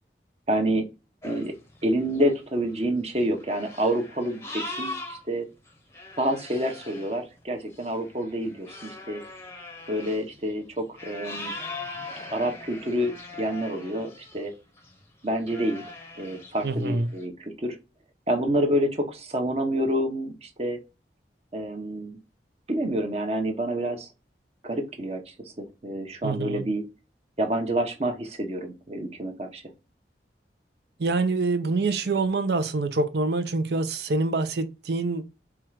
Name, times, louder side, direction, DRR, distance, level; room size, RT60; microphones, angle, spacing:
voice 1, 0.5-0.9 1.2-1.5 1.8-5.4 6.2-9.2 9.9-11.5 12.3-14.5 15.2-15.8 16.2-17.8 18.3-20.8 21.5-22.2 22.7-24.1 24.6-26.8 27.4-29.6, right 1 dB, 35° right, 0.8 m, -28 dB
sound 1, 1.2-5.2 5.7-14.5 14.8-15.0 15.4-17.2, left 2 dB, 15° left, 0.7 m, -41 dB
voice 2, 16.6-17.1 26.2-26.6 31.0-35.2, right 3 dB, 70° right, 0.6 m, -26 dB
4.6 x 2.4 x 4.6 m
head